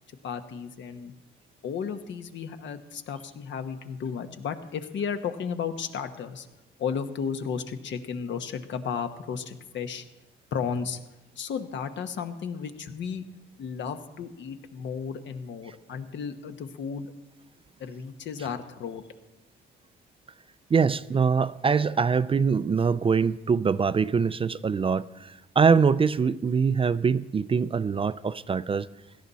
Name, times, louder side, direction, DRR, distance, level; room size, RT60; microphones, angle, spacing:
voice 1, 0.2-1.1 1.6-6.5 6.8-10.0 10.5-11.0 11.4-13.2 13.6-17.1 17.8-19.0, left 6 dB, 65° left, 8 dB, 1.2 m, -34 dB
voice 2, 20.7-28.9, right 5 dB, 25° right, 16 dB, 0.4 m, -23 dB
17.0 x 12.5 x 4.1 m, 1.0 s
cardioid pair, 90°, 20 cm